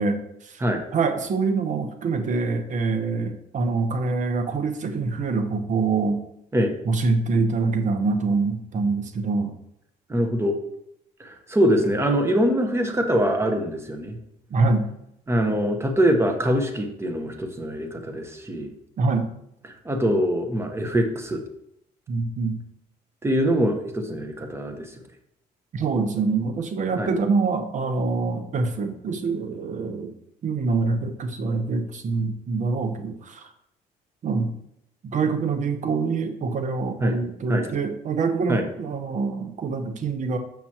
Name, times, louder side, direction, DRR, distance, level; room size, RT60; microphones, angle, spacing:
voice 1, 0.0-0.6 0.9-6.2 6.8-9.5 14.5-14.9 19.0-19.3 22.1-22.6 25.7-30.1 30.4-33.5 34.2-34.5 35.0-40.4, right 4 dB, 45° right, 7 dB, 0.9 m, -25 dB
voice 2, 10.1-10.5 11.2-14.2 15.3-18.7 19.8-21.4 23.2-24.9 27.0-27.1 37.0-37.2 37.5-37.7 38.5-38.6, equal, 15° right, 5 dB, 1.0 m, -23 dB
7.4 x 5.9 x 2.9 m, 0.78 s
cardioid pair, 110°, 17 cm